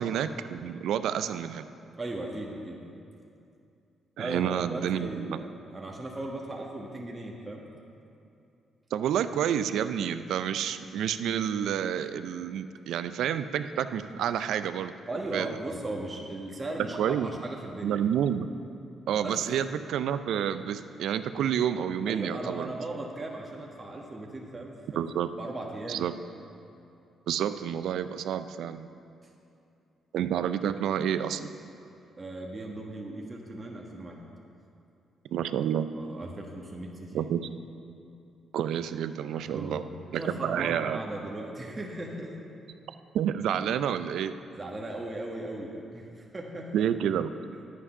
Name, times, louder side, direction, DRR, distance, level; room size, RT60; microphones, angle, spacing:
voice 1, 0.0-1.7 4.2-5.4 8.9-14.9 15.3-15.5 17.0-17.3 17.8-18.5 19.1-22.7 25.0-25.3 25.9-26.1 27.3-28.9 30.1-31.5 35.3-35.9 37.1-37.4 38.5-39.8 40.1-41.0 43.1-44.4 46.7-47.3, right 9 dB, 80° right, 11 dB, 0.4 m, -29 dB
voice 2, 2.0-2.8 4.2-7.7 15.1-18.1 19.1-19.5 22.1-25.0 25.4-26.2 32.2-34.2 35.9-37.3 39.4-42.4 44.5-46.9, right 2 dB, 30° right, -1 dB, 1.3 m, -37 dB
9.8 x 8.4 x 5.5 m, 2.6 s
cardioid pair, 75°, 0 cm